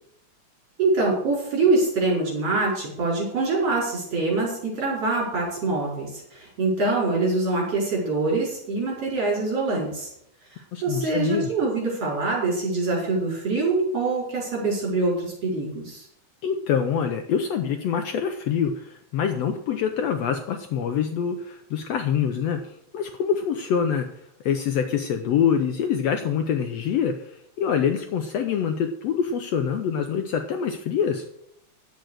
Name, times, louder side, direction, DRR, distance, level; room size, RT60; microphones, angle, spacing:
voice 1, 0.8-10.1 10.8-16.0, right 3 dB, 50° right, -3 dB, 5.8 m, -24 dB
voice 2, 10.7-11.5 16.4-24.1 24.4-31.3, left 7 dB, 70° left, 6 dB, 1.7 m, -25 dB
10.5 x 8.2 x 6.4 m, 0.72 s
omnidirectional pair, 3.5 m